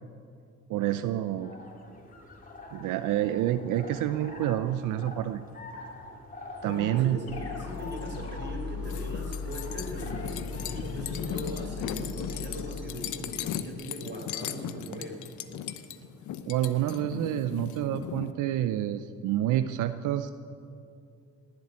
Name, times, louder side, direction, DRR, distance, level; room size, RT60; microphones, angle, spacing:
voice 1, 0.7-1.6 2.7-5.4 6.6-7.2 16.5-20.3, right 12 dB, 85° right, 11 dB, 0.6 m, -28 dB
sound 1, 1.2-10.9, left 2 dB, 30° left, 3.1 m, -46 dB
voice 2, 6.6-15.2, equal, 35° right, 1 dB, 4.4 m, -39 dB
sound 2, 7.3-13.7, left 4 dB, 55° left, 3.3 m, -38 dB
sound 3, 8.8-18.3, left 10 dB, 75° left, 0.9 m, -37 dB
19.0 x 7.8 x 9.6 m, 2.5 s
cardioid pair, 90°, 30 cm